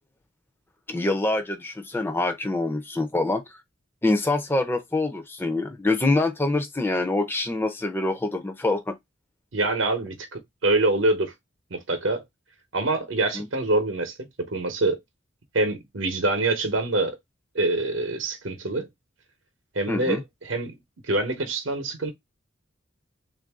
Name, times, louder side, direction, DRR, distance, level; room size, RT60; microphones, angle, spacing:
voice 1, 0.9-3.4 4.0-8.9 13.3-13.5 19.9-20.2, left 2 dB, 10° left, 0.5 m, -25 dB
voice 2, 9.5-11.3 11.7-12.2 12.7-14.1 14.5-15.0 15.5-17.2 17.5-18.9 19.7-20.7 21.1-22.1, right 2 dB, 65° right, 0.9 m, -25 dB
3.5 x 2.6 x 3.5 m
head